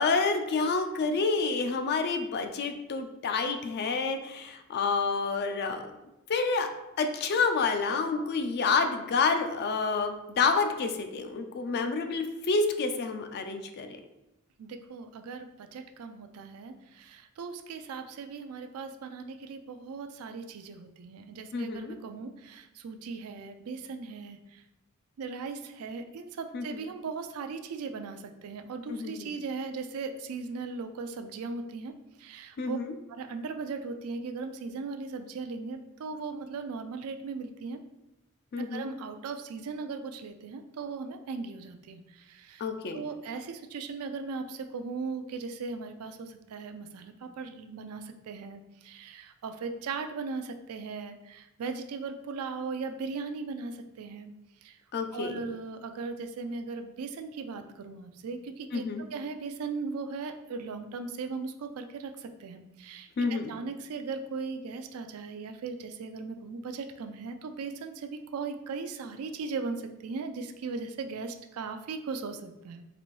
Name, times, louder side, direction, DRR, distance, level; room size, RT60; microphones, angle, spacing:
voice 1, 0.0-5.8 6.3-6.7 7.0-14.0 21.5-21.9 26.5-26.8 28.9-29.3 32.6-32.9 38.5-38.9 42.6-43.0 54.9-55.4 58.7-59.0 63.2-63.5, left 4 dB, 50° left, 6 dB, 0.4 m, -28 dB
voice 2, 14.6-24.6 25.2-31.9 32.2-32.8 33.1-37.8 38.6-42.7 42.9-54.3 54.6-54.8 55.1-72.8, right 4 dB, 80° right, 7 dB, 0.4 m, -38 dB
4.1 x 2.6 x 3.1 m, 0.95 s
head